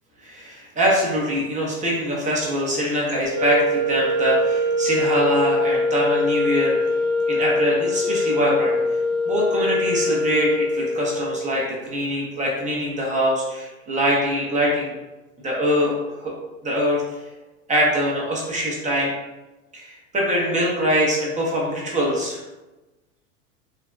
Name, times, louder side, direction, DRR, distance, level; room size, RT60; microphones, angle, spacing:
voice 1, 0.2-6.9 7.3-8.8 9.3-14.9 15.4-16.3 16.6-17.2 17.7-19.1 19.7-22.4, equal, 20° right, -3 dB, 0.5 m, -23 dB
sound 1, 3.3-11.5, left 2 dB, 70° right, 0.6 m, -23 dB
3.2 x 2.1 x 2.3 m, 1.1 s
supercardioid pair, 115°, 42 cm